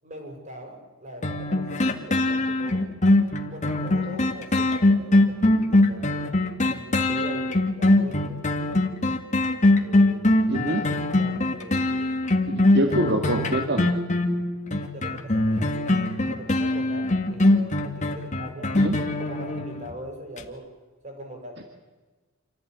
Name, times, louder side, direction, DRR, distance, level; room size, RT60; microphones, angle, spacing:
voice 1, 0.0-2.9 3.5-6.3 6.6-8.4 9.8-10.7 11.0-12.1 12.8-13.6 14.9-18.9 19.2-20.7 21.0-21.6, equal, 35° right, 3 dB, 6.9 m, -42 dB
sound 1, 1.2-19.9 20.4-20.5, left 2 dB, 35° left, 2.2 m, -22 dB
voice 2, 10.5-10.8 12.5-13.9 18.8-19.0, right 1 dB, 55° right, 4 dB, 2.2 m, -25 dB
27.0 x 15.5 x 9.6 m, 1.3 s
head